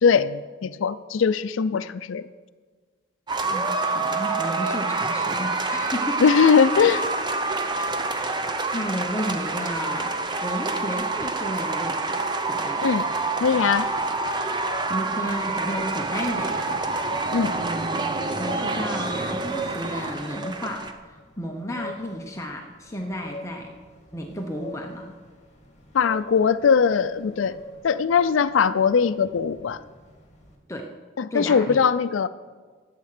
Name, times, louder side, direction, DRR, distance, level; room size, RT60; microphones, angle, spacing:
voice 1, 0.0-2.3 6.2-7.0 12.8-13.1 13.4-13.9 17.3-17.5 25.9-27.6 27.8-29.8 31.2-32.3, left 6 dB, 80° left, 0.4 m, -20 dB
sound 1, 3.3-20.9, right 3 dB, 20° right, 0.7 m, -27 dB
voice 2, 3.5-6.2 6.7-7.0 7.5-8.5 8.7-10.1 10.4-12.8 14.9-16.7 17.4-23.7 24.1-25.1 30.7-30.9 31.3-31.8, equal, 15° left, 0.8 m, -33 dB
sound 2, 13.1-30.6, left 2 dB, 35° left, 2.1 m, -44 dB
12.0 x 8.7 x 6.6 m
head